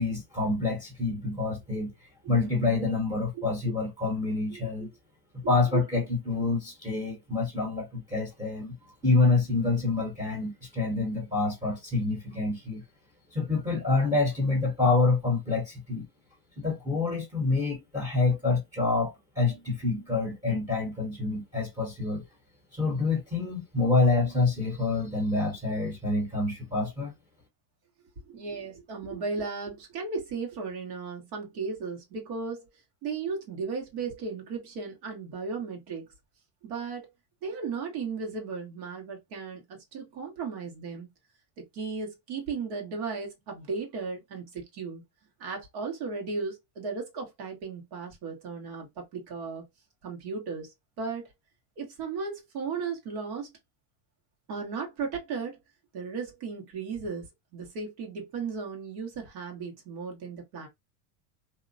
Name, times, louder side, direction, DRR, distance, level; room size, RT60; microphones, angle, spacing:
voice 1, 0.0-4.9 5.5-8.7 9.0-12.8 13.3-16.1 16.6-22.2 22.7-27.1, left 3 dB, 10° right, 1.0 m, -27 dB
voice 2, 28.3-32.7 33.0-36.1 36.6-37.1 37.4-41.1 41.6-45.0 45.4-49.6 50.0-50.7 51.0-51.3 51.8-53.5 54.5-55.6 55.9-60.7, right 4 dB, 70° right, 1.5 m, -35 dB
2.8 x 2.1 x 2.6 m
supercardioid pair, 115°, 48 cm